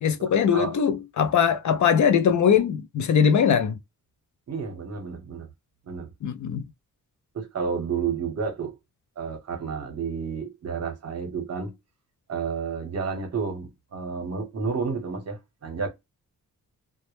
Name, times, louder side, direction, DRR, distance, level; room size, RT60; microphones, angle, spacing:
voice 1, 0.0-3.8 6.2-6.6, left 7 dB, 60° left, 0.5 m, -21 dB
voice 2, 4.5-5.5 5.9-6.1 7.3-8.7 9.2-11.7 12.3-15.9, right 5 dB, 50° right, 0.8 m, -31 dB
2.2 x 2.0 x 2.9 m
wide cardioid pair, 165°, 34 cm